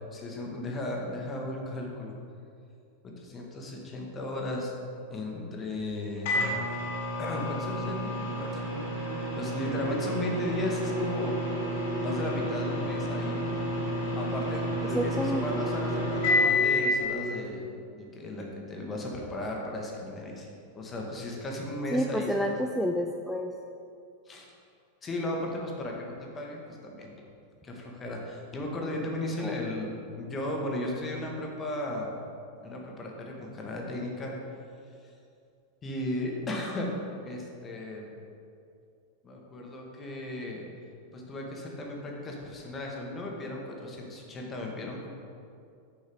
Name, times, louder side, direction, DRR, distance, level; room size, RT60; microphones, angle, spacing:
voice 1, 0.1-2.2 3.0-4.7 5.1-6.4 6.7-6.8 7.2-8.6 9.3-11.4 12.0-13.4 14.1-17.6 17.9-20.5 20.7-22.5 24.2-24.5 25.0-27.1 27.6-32.1 32.6-34.3 35.0-35.1 35.8-36.9 37.2-38.1 39.2-40.6 41.1-45.1, left 1 dB, 20° left, -1 dB, 1.4 m, -35 dB
Microwave oven, 6.3-17.0, left 1 dB, 50° left, 1.8 m, -30 dB
sound 1, 9.6-17.6, equal, 30° right, 1.9 m, -38 dB
voice 2, 14.8-15.6 21.9-23.5 29.4-29.5, equal, ahead, 3 dB, 0.3 m, -30 dB
6.6 x 5.4 x 5.1 m, 2.5 s
figure-of-eight pair, 90°, 0 cm